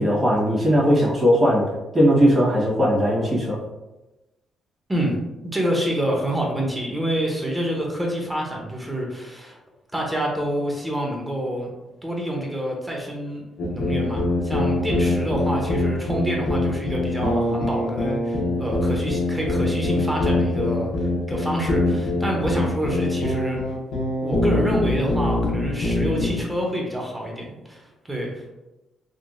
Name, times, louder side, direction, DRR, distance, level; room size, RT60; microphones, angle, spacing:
voice 1, 0.0-1.6 1.9-3.6, equal, 30° right, -6 dB, 1.4 m, -18 dB
voice 2, 5.5-9.6 9.9-11.7 12.0-13.4 13.7-23.6 24.2-28.3, right 1 dB, 10° right, -1 dB, 0.8 m, -27 dB
sound 1, 13.6-26.3, left 2 dB, 85° left, 0.7 m, -23 dB
3.6 x 2.3 x 2.5 m, 1.0 s
cardioid pair, 90°, 0 cm